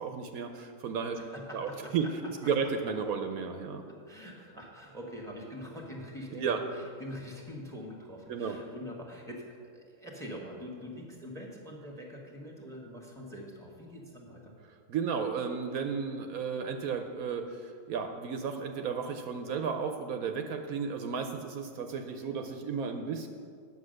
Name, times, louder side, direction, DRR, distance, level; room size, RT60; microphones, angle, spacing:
voice 1, 0.0-1.2 1.5-2.1 2.4-3.8 6.3-6.6 8.3-8.6 14.9-23.3, right 6 dB, 70° right, 5 dB, 1.1 m, -33 dB
voice 2, 1.2-2.5 3.9-14.5, equal, ahead, 0 dB, 1.3 m, -44 dB
9.6 x 7.3 x 6.4 m, 2.2 s
omnidirectional pair, 1.6 m